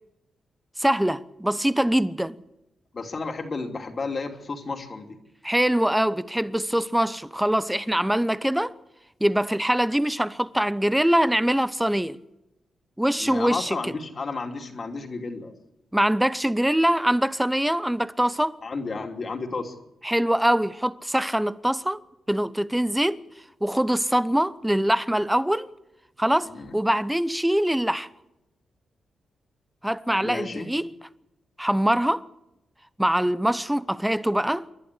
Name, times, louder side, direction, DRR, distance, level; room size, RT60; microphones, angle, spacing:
voice 1, 0.8-2.4 5.4-8.7 9.2-12.2 13.0-13.8 15.9-18.6 20.0-22.0 22.3-23.2 23.6-25.7 26.2-28.1 29.8-30.9 31.6-32.3 33.0-34.7, right 1 dB, 5° right, 0.9 m, -23 dB
voice 2, 2.9-5.2 13.2-15.5 18.6-19.7 26.4-26.8 30.1-30.7, left 4 dB, 45° left, 3.0 m, -32 dB
28.0 x 11.0 x 8.5 m
cardioid pair, 65°, 0 cm